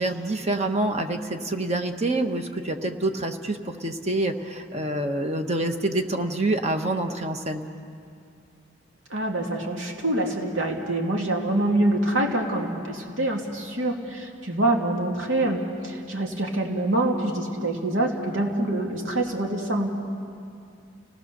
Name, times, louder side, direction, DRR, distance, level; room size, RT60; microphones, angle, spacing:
voice 1, 0.0-7.7, right 2 dB, 35° right, 5 dB, 1.3 m, -27 dB
voice 2, 9.1-19.9, right 1 dB, 85° right, 1 dB, 2.5 m, -25 dB
30.0 x 18.5 x 6.8 m, 2.4 s
head